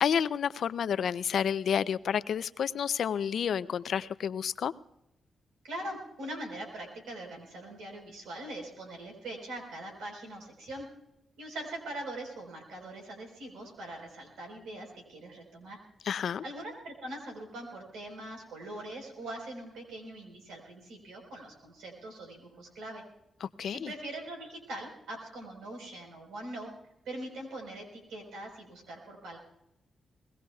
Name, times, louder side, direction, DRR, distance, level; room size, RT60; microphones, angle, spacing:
voice 1, 0.0-4.7 16.1-16.4 23.4-23.9, left 8 dB, 70° left, 16 dB, 0.4 m, -30 dB
voice 2, 5.6-10.9 11.4-15.8 16.4-23.0 23.7-26.7 27.0-29.4, right 1 dB, 85° right, 1 dB, 4.3 m, -42 dB
22.0 x 20.5 x 2.3 m, 0.84 s
supercardioid pair, 50°, 0 cm